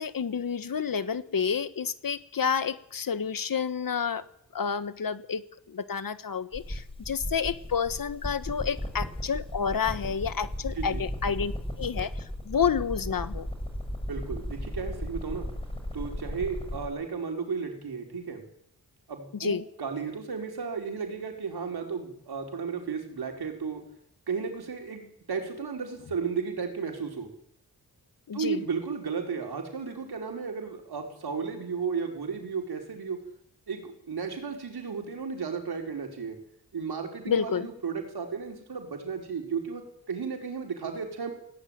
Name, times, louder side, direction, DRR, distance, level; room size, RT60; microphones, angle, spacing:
voice 1, 0.0-4.2 4.5-11.5 11.8-13.5 19.4-19.6 28.3-28.6 37.3-37.7, left 6 dB, 60° left, 13 dB, 1.3 m, -29 dB
sound 1, 6.5-16.9, equal, 15° left, 5.9 m, -35 dB
voice 2, 14.1-15.5 15.9-18.4 19.1-23.8 24.3-27.3 28.3-33.2 33.7-36.4 36.7-41.3, right 5 dB, 70° right, 2 dB, 5.3 m, -34 dB
18.0 x 17.5 x 9.3 m, 0.70 s
wide cardioid pair, 80°, 39 cm